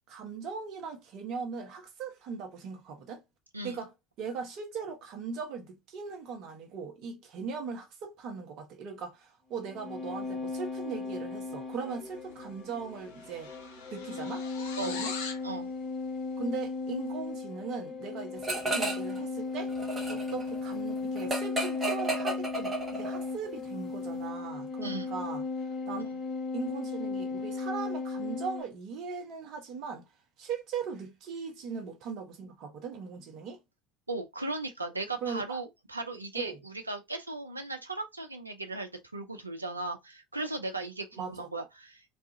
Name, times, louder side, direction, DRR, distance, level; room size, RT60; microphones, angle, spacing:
voice 1, 0.1-3.2 3.6-3.9 4.2-13.5 13.9-14.5 14.8-15.1 16.4-19.7 20.1-25.5 25.9-26.1 26.5-30.1 30.4-33.6 35.2-35.6 36.3-36.6 41.1-41.5, right 5 dB, 50° right, 0.8 m, -39 dB
sound 1, 9.6-28.6, left 3 dB, 15° left, 0.9 m, -36 dB
sound 2, 12.3-12.5 12.8-15.5, left 5 dB, 70° left, 0.6 m, -41 dB
sound 3, 18.4-19.2 19.5-23.3, right 1 dB, 20° right, 0.9 m, -33 dB
voice 2, 24.8-25.2 34.1-42.0, right 2 dB, 85° right, 0.4 m, -37 dB
2.4 x 2.3 x 2.6 m
figure-of-eight pair, 65°, 0 cm